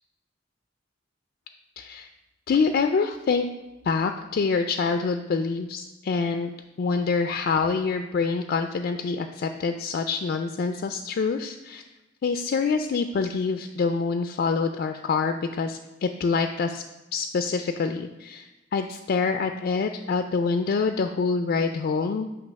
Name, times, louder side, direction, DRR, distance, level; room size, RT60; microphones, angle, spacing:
voice 1, 1.8-2.1 2.5-3.5 3.8-6.5 6.8-11.8 12.2-16.8 17.1-22.3, left 4 dB, 55° left, 6 dB, 0.3 m, -26 dB
8.2 x 2.9 x 5.2 m, 1.1 s
head